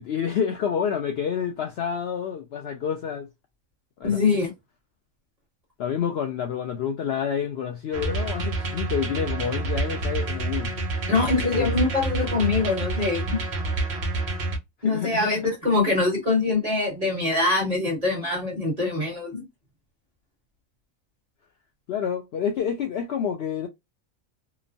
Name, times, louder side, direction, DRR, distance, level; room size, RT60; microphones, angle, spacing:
voice 1, 0.0-3.3 4.0-4.2 5.8-10.8 11.5-11.7 14.8-15.4 21.9-23.7, left 7 dB, 65° left, 0.6 m, -28 dB
voice 2, 4.0-4.5 11.1-13.4 14.8-19.5, left 3 dB, 30° right, 1.4 m, -24 dB
sound 1, 7.9-14.6, right 2 dB, 55° right, 1.0 m, -28 dB
2.9 x 2.0 x 2.5 m
omnidirectional pair, 1.4 m